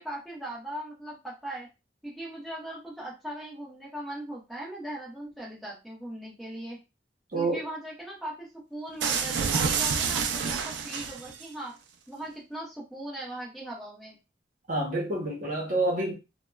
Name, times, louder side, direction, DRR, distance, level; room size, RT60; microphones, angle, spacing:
voice 1, 0.0-1.7 2.0-6.8 7.3-11.7 12.1-14.2, right 1 dB, ahead, 0.9 m, -39 dB
voice 2, 7.3-7.7 14.7-16.1, right 2 dB, 50° right, 0.9 m, -28 dB
sound 1, 9.0-11.5, right 6 dB, 75° right, 0.4 m, -28 dB
2.8 x 2.2 x 2.2 m
head